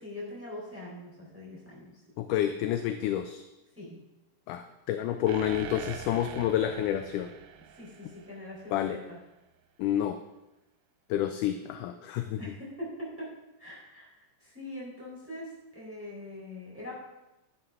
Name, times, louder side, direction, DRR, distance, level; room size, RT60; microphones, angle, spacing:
voice 1, 0.0-1.9 3.8-4.0 7.7-9.2 12.4-13.3 13.6-14.1 14.4-16.9, left 1 dB, 5° right, -6 dB, 3.6 m, -42 dB
voice 2, 2.2-3.4 4.5-7.3 8.7-9.0 9.8-10.2 11.1-12.4, left 11 dB, 80° left, 8 dB, 1.9 m, -29 dB
sound 1, 5.3-8.9, right 9 dB, 80° right, 1.7 m, -44 dB
11.0 x 11.0 x 3.7 m, 0.97 s
omnidirectional pair, 4.0 m